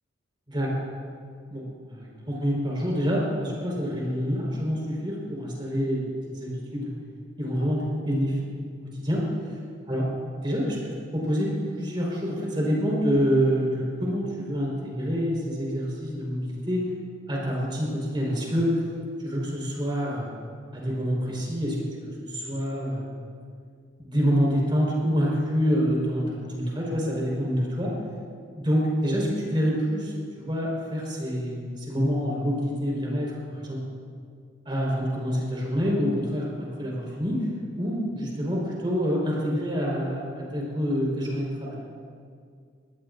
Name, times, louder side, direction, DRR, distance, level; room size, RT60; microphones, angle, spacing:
voice 1, 1.5-6.9 7.4-8.4 9.0-9.2 9.9-10.0 10.4-11.5 11.8-16.8 17.3-18.8 19.2-20.3 20.7-23.1 24.0-27.9 28.5-33.8 34.6-37.4 37.8-41.8, equal, 25° right, -4 dB, 4.8 m, -27 dB
23.5 x 19.0 x 2.7 m, 2.2 s
head